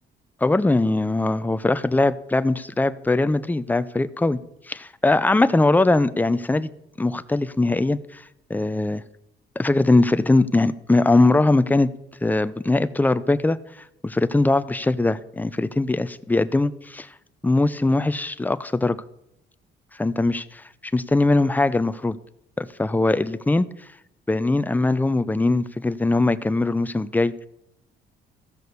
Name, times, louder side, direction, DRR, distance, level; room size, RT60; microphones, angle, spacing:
voice 1, 0.4-4.4 4.7-6.7 7.0-8.2 8.5-9.0 9.6-11.9 12.2-13.6 14.0-17.1 17.4-19.0 20.0-20.6 20.9-22.2 22.6-23.7 24.3-27.5, left 2 dB, 10° left, 14 dB, 0.5 m, -21 dB
14.5 x 6.4 x 6.8 m, 0.81 s
cardioid pair, 90°, 20 cm